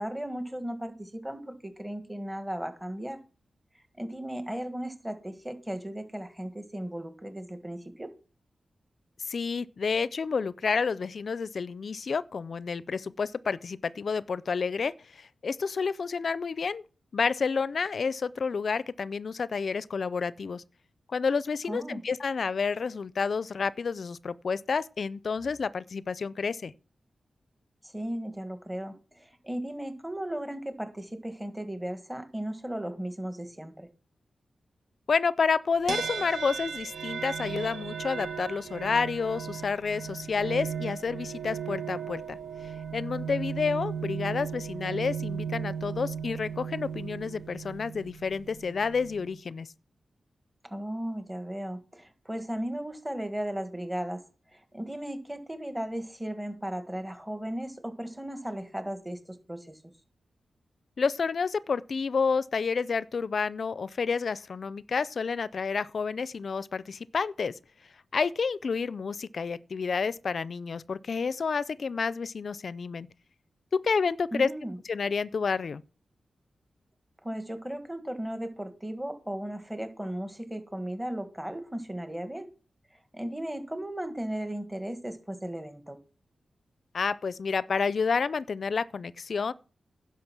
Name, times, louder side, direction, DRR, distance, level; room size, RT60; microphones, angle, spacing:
voice 1, 0.0-3.2 3.9-8.1 21.7-22.0 27.8-33.9 50.7-54.2 54.5-59.8 74.3-74.8 77.2-82.5 83.1-86.0, right 1 dB, 10° right, 1.7 m, -36 dB
voice 2, 9.3-16.8 17.1-20.6 21.1-26.7 35.1-42.4 42.9-49.7 61.0-67.5 68.1-73.1 73.7-74.5 74.9-75.8 86.9-89.5, left 5 dB, 65° left, 0.4 m, -29 dB
sound 1, 35.9-49.4, right 7 dB, 80° right, 0.9 m, -36 dB
10.5 x 6.3 x 6.0 m
cardioid pair, 60°, 0 cm